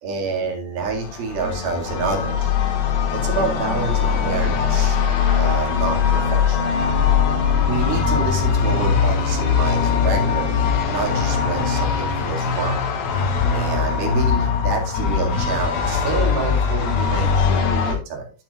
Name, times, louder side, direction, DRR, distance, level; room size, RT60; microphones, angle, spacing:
voice 1, 0.0-2.5 3.1-5.0 5.3-6.7 7.3-12.8 13.5-18.3, right 4 dB, 75° right, 1 dB, 4.1 m, -28 dB
sound 1, 0.8-18.0, left 7 dB, 85° left, 3.5 m, -21 dB
sound 2, 6.7-12.2, equal, 65° left, 4.8 m, -31 dB
10.0 x 9.4 x 2.4 m, 0.35 s
omnidirectional pair, 4.4 m